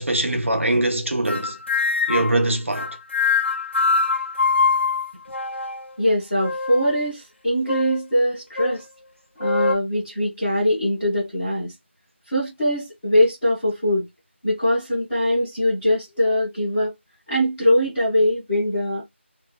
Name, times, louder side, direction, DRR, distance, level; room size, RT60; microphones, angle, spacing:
voice 1, 0.0-1.6 2.1-3.0, right 1 dB, 80° right, 0.9 m, -22 dB
sound 1, 1.3-2.4 2.7-5.9 6.4-7.0 7.7-8.0 8.6-8.8 9.4-9.7, left 4 dB, 65° left, 0.8 m, -23 dB
voice 2, 6.0-8.8 9.4-11.7 12.3-14.1 14.4-16.9 17.3-19.0, equal, ahead, 0.4 m, -22 dB
2.5 x 2.3 x 2.2 m
figure-of-eight pair, 175°, 7 cm